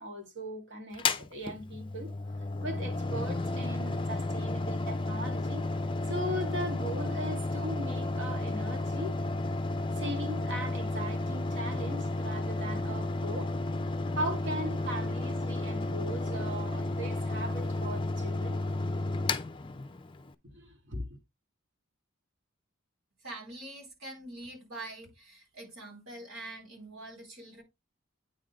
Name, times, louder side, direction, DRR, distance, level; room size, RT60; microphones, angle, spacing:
voice 1, 0.0-2.1 2.6-5.7 6.1-9.2 10.0-13.5 14.1-18.6 20.5-21.1, equal, 60° right, 2.1 m, -38 dB
Mechanical fan, 0.9-20.3, left 2 dB, 25° left, 0.5 m, -32 dB
voice 2, 23.2-27.6, right 2 dB, 80° right, 4.2 m, -44 dB
8.9 x 3.8 x 3.5 m
head